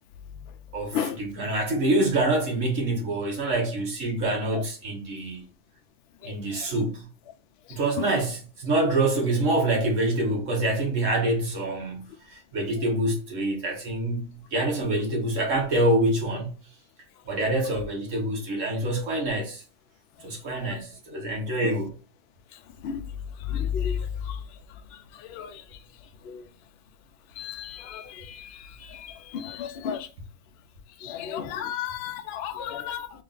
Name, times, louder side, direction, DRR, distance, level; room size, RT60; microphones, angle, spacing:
voice 1, 0.7-5.4 6.2-7.1 7.7-16.5 17.3-19.6 20.2-21.9, right 1 dB, 65° right, 1.5 m, -26 dB
voice 2, 23.5-24.0 25.3-25.5 26.3-26.4 27.4-28.5 28.9-30.1 31.0-33.1, left 8 dB, 60° left, 0.7 m, -32 dB
3.8 x 2.4 x 3.7 m
omnidirectional pair, 1.4 m